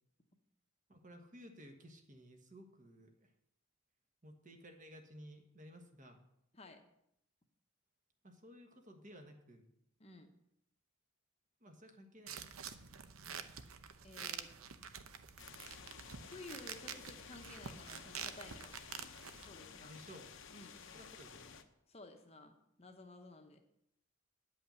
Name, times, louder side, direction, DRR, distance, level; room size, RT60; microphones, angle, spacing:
voice 1, 0.9-3.3 4.2-6.2 8.2-9.6 11.6-12.6 19.8-20.3 20.9-21.5, equal, 35° right, 5 dB, 1.3 m, -56 dB
sound 1, 12.3-19.5, right 7 dB, 75° right, 0.7 m, -48 dB
voice 2, 14.0-14.5 16.2-18.7 19.4-20.0 20.5-20.8 21.9-23.6, left 2 dB, 30° left, 5 dB, 0.9 m, -54 dB
sound 2, 15.4-21.6, left 6 dB, 60° left, 0.8 m, -54 dB
10.0 x 5.6 x 8.1 m, 0.77 s
head